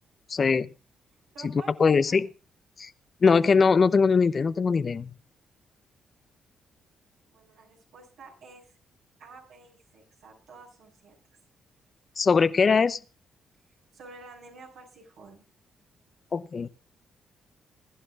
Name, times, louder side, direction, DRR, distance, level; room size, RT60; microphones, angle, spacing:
voice 1, 0.3-0.7 1.8-2.3 2.8-2.9 3.2-5.2 12.2-13.0 16.3-16.7, left 5 dB, 45° left, 0.7 m, -21 dB
voice 2, 1.3-2.2 7.3-8.7 9.2-11.1 13.9-15.5, right 3 dB, 75° right, 5.8 m, -50 dB
21.5 x 11.5 x 2.4 m
supercardioid pair, 50°, 0 cm